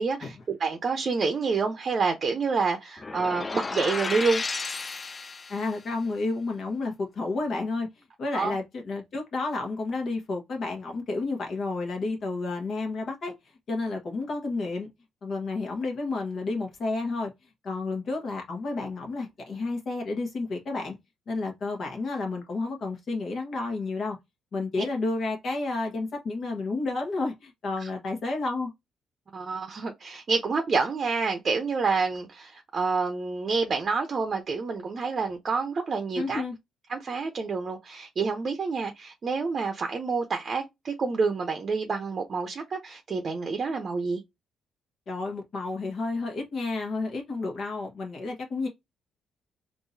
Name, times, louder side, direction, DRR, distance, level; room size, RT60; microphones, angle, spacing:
voice 1, 0.0-4.4 8.3-8.6 24.8-24.9 27.8-27.9 29.3-36.4 36.9-44.2, right 4 dB, 45° right, 0.6 m, -28 dB
sound 1, 3.0-5.8, left 3 dB, 30° left, 0.3 m, -33 dB
voice 2, 5.5-7.9 8.2-13.3 13.7-14.9 15.2-17.3 17.6-20.9 21.3-24.2 24.5-28.7 36.2-36.5 45.1-48.7, left 3 dB, 55° left, 1.2 m, -31 dB
3.7 x 2.6 x 2.6 m
cardioid pair, 90°, 0 cm